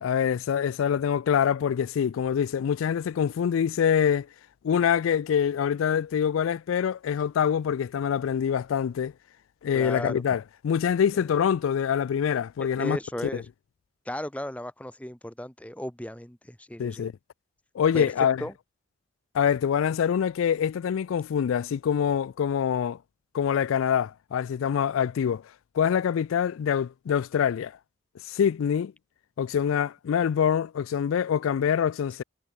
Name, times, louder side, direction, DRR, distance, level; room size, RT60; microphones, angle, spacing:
voice 1, 0.0-4.3 4.6-9.1 9.6-13.0 16.8-17.1 17.7-18.4 19.3-23.0 23.3-25.4 25.7-27.8 28.3-28.9 29.4-32.2, left 8 dB, 85° left, 0.3 m, -25 dB
voice 2, 9.7-10.2 12.6-13.4 14.0-17.0 17.9-18.5, left 1 dB, 5° left, 1.1 m, -35 dB
head